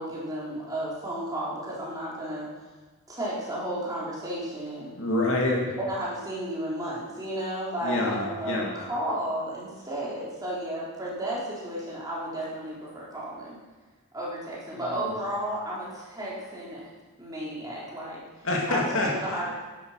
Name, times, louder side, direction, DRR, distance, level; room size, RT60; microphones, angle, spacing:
voice 1, 0.0-2.5 3.1-4.9 5.8-13.5 14.1-16.9 17.2-18.2 18.7-18.8 19.2-19.5, right 1 dB, 15° right, -6 dB, 4.0 m, -33 dB
voice 2, 5.0-5.7 7.8-8.8 14.7-15.1 18.4-19.4, left 2 dB, 65° left, -2 dB, 2.8 m, -27 dB
12.0 x 11.5 x 5.9 m, 1.3 s
head